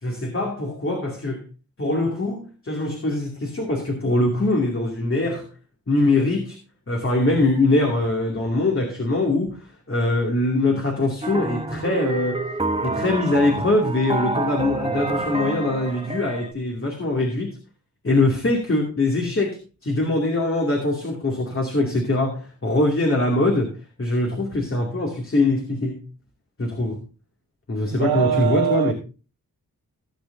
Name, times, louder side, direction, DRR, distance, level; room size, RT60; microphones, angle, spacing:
voice 1, 0.0-1.5 1.8-5.5 5.9-6.6 6.9-12.4 12.8-17.6 18.0-26.0 26.6-27.0 27.7-28.9, left 2 dB, 35° left, 2.5 m, -22 dB
sound 1, 11.2-16.5, right 2 dB, 15° right, 0.9 m, -28 dB
voice 2, 27.9-28.9, right 10 dB, 90° right, 0.7 m, -22 dB
17.0 x 8.2 x 2.7 m
wide cardioid pair, 115°, 36 cm